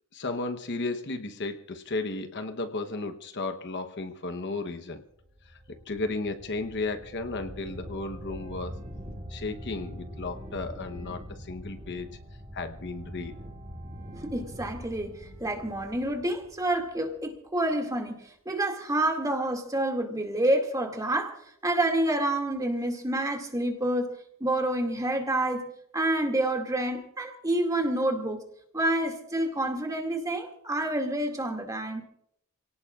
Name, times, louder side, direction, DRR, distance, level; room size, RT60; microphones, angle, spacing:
voice 1, 0.1-5.0 5.7-8.8 9.3-12.1 12.5-13.4, left 3 dB, 55° left, 8 dB, 1.0 m, -34 dB
sound 1, 5.2-17.3, equal, 30° right, 4.1 m, -43 dB
voice 2, 14.2-24.1 24.4-28.4 28.7-32.0, right 1 dB, 15° right, 3 dB, 2.3 m, -28 dB
28.5 x 18.0 x 2.4 m, 0.70 s
head